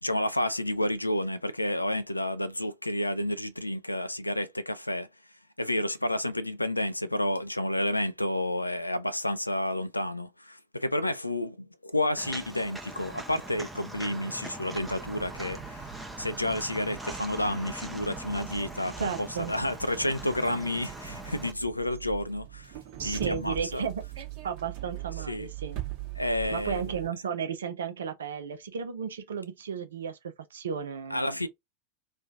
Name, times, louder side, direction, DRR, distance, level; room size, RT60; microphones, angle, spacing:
voice 1, 0.0-5.1 5.6-15.9 16.2-23.9 25.3-25.5 26.2-27.0 31.1-31.5, left 1 dB, 85° left, 0.4 m, -30 dB
Walk footsteps, 12.2-21.5, right 1 dB, 5° right, 0.6 m, -41 dB
sound 1, 14.7-27.1, right 15 dB, 40° right, 1.0 m, -42 dB
voice 2, 19.0-19.5 23.0-25.8 26.5-30.2 30.5-31.4, right 6 dB, 65° right, 0.6 m, -34 dB
3.1 x 2.3 x 2.5 m
figure-of-eight pair, 90°, 0 cm